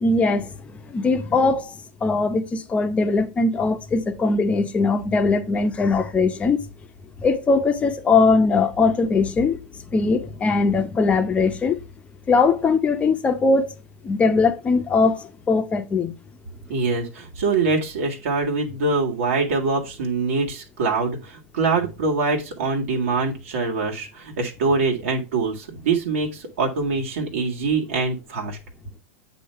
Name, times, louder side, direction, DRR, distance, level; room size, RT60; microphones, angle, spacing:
voice 1, 0.0-6.6 7.2-9.6 9.9-11.8 12.3-13.7 14.0-16.2, left 4 dB, 15° left, 0.8 m, -20 dB
voice 2, 16.7-28.6, right 4 dB, 80° right, 1.8 m, -24 dB
8.4 x 2.9 x 5.5 m
supercardioid pair, 140°, 7 cm